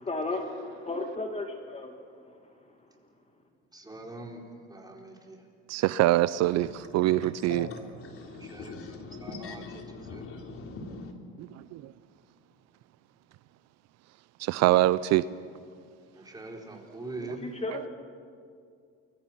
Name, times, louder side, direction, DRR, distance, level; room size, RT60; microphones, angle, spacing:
voice 1, 0.0-3.4 17.2-17.9, left 2 dB, 20° left, 2.3 m, -36 dB
voice 2, 3.7-5.4 8.4-8.8 9.2-9.6 10.1-10.2 16.1-17.5, right 2 dB, 15° right, 4.6 m, -42 dB
voice 3, 5.7-7.7 11.4-11.9 14.4-15.2, right 16 dB, 60° right, 0.6 m, -24 dB
voice 4, 6.6-11.1, left 3 dB, 45° left, 3.7 m, -42 dB
29.0 x 22.5 x 6.0 m
supercardioid pair, 90°, 30 cm